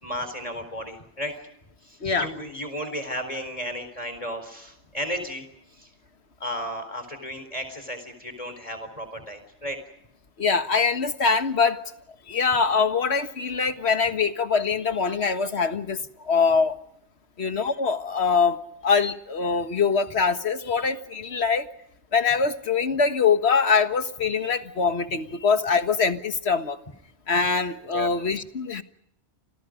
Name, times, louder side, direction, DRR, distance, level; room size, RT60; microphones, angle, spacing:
voice 1, 0.0-1.4 1.8-5.4 5.7-5.9 6.4-9.8 27.9-28.1, equal, 30° left, 8 dB, 4.3 m, -34 dB
voice 2, 10.4-11.8 12.3-16.0 16.2-16.8 17.4-18.6 18.8-21.7 22.1-26.8 27.3-28.8, left 5 dB, 70° left, 8 dB, 1.8 m, -23 dB
30.0 x 26.5 x 5.2 m, 0.74 s
omnidirectional pair, 1.1 m